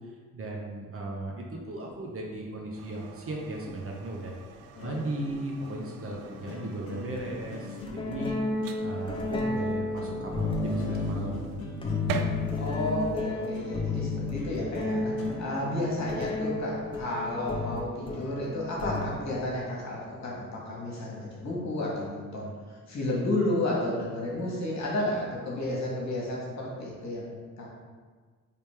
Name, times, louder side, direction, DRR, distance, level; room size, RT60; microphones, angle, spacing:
voice 1, 0.3-4.3 4.8-8.3 8.8-11.5, right 2 dB, 35° right, -1 dB, 0.8 m, -36 dB
sound 1, 2.4-16.4, left 4 dB, 80° left, 0.6 m, -42 dB
sound 2, 2.7-13.1, right 5 dB, 55° right, 0.5 m, -43 dB
sound 3, 3.7-3.8 5.3-5.4 7.1-7.3 7.9-19.4, left 2 dB, 15° left, 0.7 m, -32 dB
voice 2, 12.5-15.1 15.4-22.5 22.9-27.7, left 1 dB, 40° left, -4 dB, 1.5 m, -32 dB
4.1 x 3.4 x 3.4 m, 1.5 s
figure-of-eight pair, 40°, 41 cm